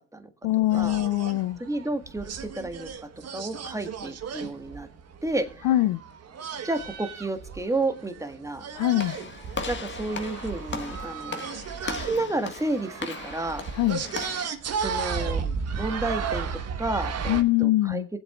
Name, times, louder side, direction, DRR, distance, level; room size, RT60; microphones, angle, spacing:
voice 1, 0.4-1.6 5.6-6.0 8.7-9.2 13.7-14.0 17.3-18.1, left 15 dB, 55° left, 13 dB, 0.6 m, -23 dB
sound 1, 0.7-17.4, right 6 dB, 40° right, 1.4 m, -35 dB
voice 2, 1.6-2.9 3.3-4.9 5.2-5.7 6.6-8.7 9.7-11.4 11.8-13.6 14.8-15.4 15.8-16.5 16.8-18.0, right 2 dB, 10° right, 7 dB, 1.7 m, -31 dB
Walk footsteps / Slam, 9.0-14.5, left 4 dB, 30° left, 1.7 m, -37 dB
22.5 x 7.8 x 2.4 m, 0.43 s
supercardioid pair, 90°, 39 cm